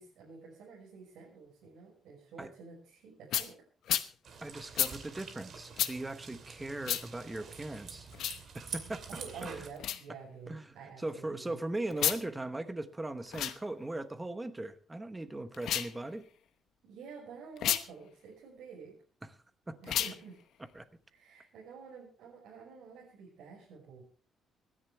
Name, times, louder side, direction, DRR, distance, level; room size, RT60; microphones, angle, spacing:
voice 1, 0.0-3.5 9.1-11.6 16.8-19.0 19.8-20.4 21.1-24.0, right 5 dB, 90° right, -4 dB, 5.7 m, -49 dB
sound 1, 3.3-3.5 3.9-4.1 4.8-4.9 5.8-5.9 6.8-7.0 8.1-8.4 9.8-10.0 11.9-12.2 13.3-13.6 15.5-15.9 17.6-17.8 19.8-20.2, left 11 dB, 70° left, 0.9 m, -31 dB
sound 2, 4.2-9.7, right 6 dB, 45° right, 2.6 m, -47 dB
voice 2, 4.4-8.1 8.5-9.0 9.4-9.7 10.5-16.2 19.2-19.3 19.7-19.8 20.7-20.8, right 2 dB, 10° right, 11 dB, 1.0 m, -39 dB
25.0 x 10.5 x 3.4 m, 0.40 s
cardioid pair, 170°, 0 cm